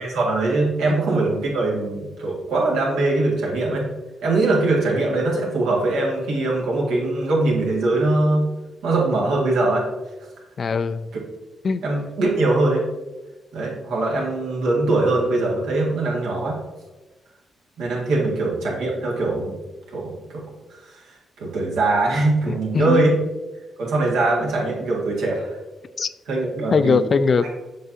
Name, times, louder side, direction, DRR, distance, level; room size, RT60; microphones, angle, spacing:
voice 1, 0.0-3.9 4.2-8.4 8.8-9.8 11.8-12.8 13.5-16.6 17.8-19.6 19.9-20.4 20.8-23.1 23.8-25.6 26.3-27.0, right 2 dB, 90° right, -3 dB, 1.9 m, -22 dB
voice 2, 10.6-11.1 11.6-11.8 22.5-23.1 26.0-26.1 26.7-27.5, left 5 dB, 55° left, 13 dB, 0.4 m, -20 dB
7.6 x 5.8 x 2.7 m, 1.1 s
supercardioid pair, 60°, 0 cm